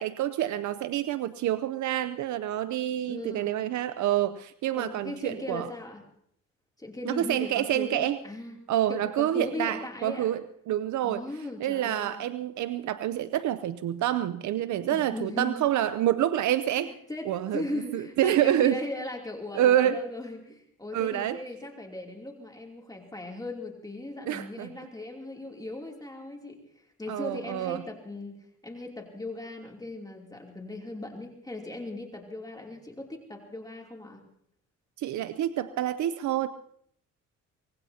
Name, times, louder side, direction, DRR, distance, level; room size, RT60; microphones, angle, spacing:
voice 1, 0.0-5.7 7.1-8.2 8.7-11.2 11.6-16.9 17.3-17.6 17.9-18.8 19.5-20.0 20.9-21.4 24.3-24.7 27.1-27.8 35.0-36.5, right 12 dB, 70° right, 13 dB, 0.7 m, -27 dB
voice 2, 3.0-3.7 4.7-6.0 6.8-8.6 8.9-10.3 11.0-12.2 14.9-15.6 16.7-34.2, left 2 dB, 10° left, 0 dB, 3.0 m, -38 dB
24.5 x 19.5 x 2.8 m, 0.69 s
cardioid pair, 90°, 30 cm